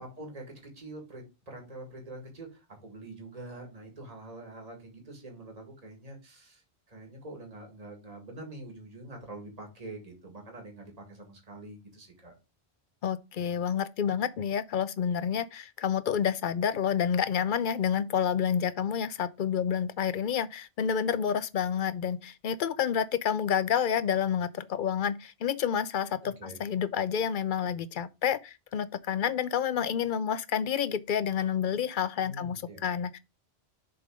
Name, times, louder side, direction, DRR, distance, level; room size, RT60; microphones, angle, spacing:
voice 1, 0.0-6.6 6.9-12.3 26.4-26.6 32.2-32.9, right 2 dB, 35° right, 2.0 m, -45 dB
voice 2, 13.0-33.2, left 8 dB, 60° left, 0.6 m, -29 dB
6.9 x 3.7 x 4.9 m
omnidirectional pair, 1.1 m